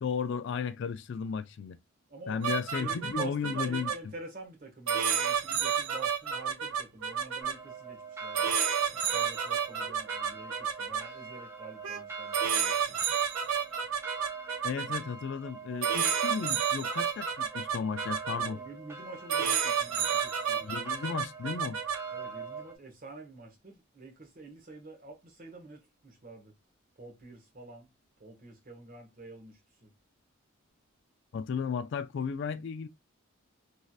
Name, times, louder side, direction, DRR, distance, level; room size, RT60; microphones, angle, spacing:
voice 1, 0.0-1.8 2.3-3.9 14.6-18.6 20.6-21.8 31.3-32.9, left 6 dB, 55° left, 0.3 m, -34 dB
voice 2, 2.1-8.5 9.1-12.8 18.4-20.7 22.1-26.5 27.0-27.9 28.2-29.9, right 3 dB, 40° right, 1.0 m, -47 dB
sound 1, 2.4-3.9 4.9-7.5 8.3-11.0 11.8-12.0 12.3-15.0 15.8-18.5 19.3-22.0, right 7 dB, 80° right, 0.6 m, -30 dB
sound 2, 7.4-22.8, right 5 dB, 10° right, 0.5 m, -43 dB
3.1 x 2.7 x 2.3 m
head